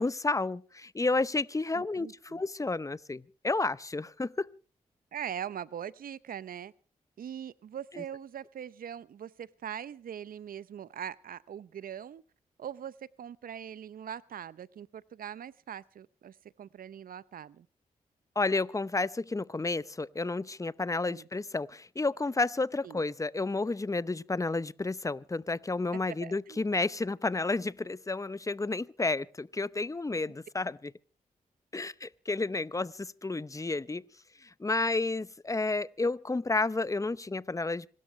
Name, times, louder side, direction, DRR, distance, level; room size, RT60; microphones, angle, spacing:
voice 1, 0.0-4.5 7.9-8.0 18.4-30.9 31.7-34.0 34.4-37.9, left 3 dB, 20° left, 0.7 m, -31 dB
voice 2, 1.7-2.4 5.1-6.7 7.2-12.2 12.6-17.7 21.1-21.3 22.8-23.0 26.1-26.7, right 9 dB, 70° right, 0.7 m, -42 dB
26.5 x 13.0 x 3.2 m
supercardioid pair, 45°, 15 cm